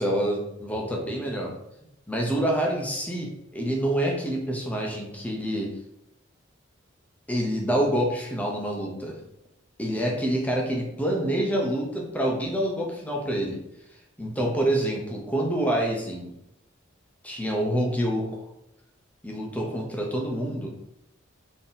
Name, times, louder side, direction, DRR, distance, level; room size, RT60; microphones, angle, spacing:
voice 1, 0.0-1.5 2.1-5.7 7.3-9.2 9.8-13.6 14.2-16.3 17.2-18.3 19.2-20.7, right 1 dB, 10° left, -1 dB, 0.8 m, -27 dB
3.9 x 3.0 x 3.9 m, 0.82 s
head